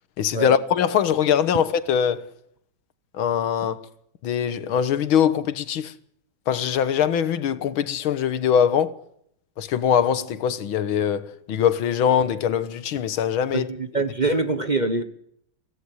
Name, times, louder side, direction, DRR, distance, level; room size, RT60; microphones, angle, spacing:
voice 1, 0.2-2.2 3.1-3.8 4.2-5.9 6.5-8.9 9.6-13.7, left 8 dB, 85° left, 2.0 m, -22 dB
voice 2, 13.5-15.0, right 3 dB, 25° right, 1.2 m, -24 dB
24.5 x 17.0 x 8.0 m
omnidirectional pair, 2.2 m